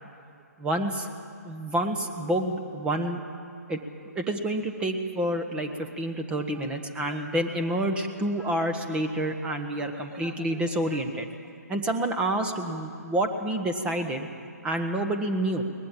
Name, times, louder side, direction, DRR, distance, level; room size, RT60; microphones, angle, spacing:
voice 1, 0.6-1.1 1.4-3.2 3.7-3.8 4.1-11.3 11.7-14.3 14.6-15.6, right 1 dB, 10° right, 6 dB, 1.2 m, -28 dB
22.0 x 19.5 x 7.5 m, 2.5 s
figure-of-eight pair, 140°, 9 cm